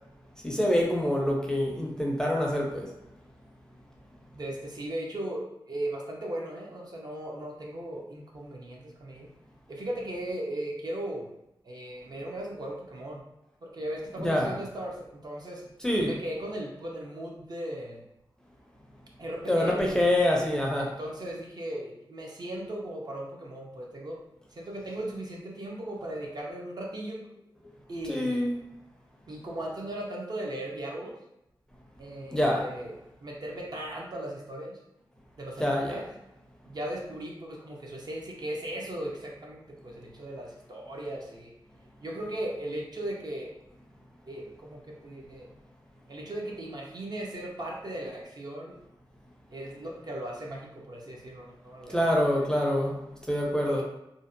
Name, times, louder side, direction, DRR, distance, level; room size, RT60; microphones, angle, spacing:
voice 1, 0.4-2.9 14.2-14.5 15.8-16.1 19.5-20.9 27.6-27.7 28.1-28.6 32.3-32.6 35.6-36.0 51.9-53.8, left 1 dB, 10° left, -1 dB, 0.4 m, -26 dB
voice 2, 4.3-9.3 9.7-11.3 11.6-13.2 13.6-15.6 16.0-18.0 19.2-19.8 20.7-24.2 24.5-27.3 27.9-28.4 29.3-31.1 32.0-32.9 33.2-34.8 35.4-36.1 36.7-41.5 42.0-43.5 44.3-45.5 46.1-48.8 49.5-52.1 52.4-52.5 53.6-53.8, right 1 dB, 50° right, -2 dB, 0.5 m, -37 dB
2.5 x 2.0 x 2.5 m, 0.87 s
wide cardioid pair, 95°, 9 cm